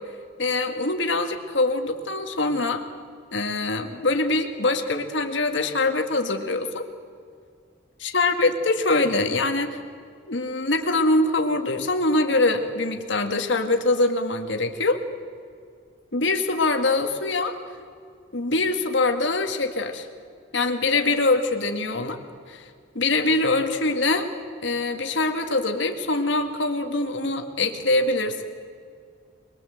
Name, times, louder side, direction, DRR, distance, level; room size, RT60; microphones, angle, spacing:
voice 1, 0.4-2.8 3.3-6.8 8.0-9.8 10.3-15.0 16.1-17.6 18.3-20.1 20.5-22.2 22.5-22.6 23.0-24.3 24.6-28.4, left 2 dB, 70° left, 5 dB, 1.9 m, -23 dB
23.0 x 22.0 x 7.9 m, 2.2 s
head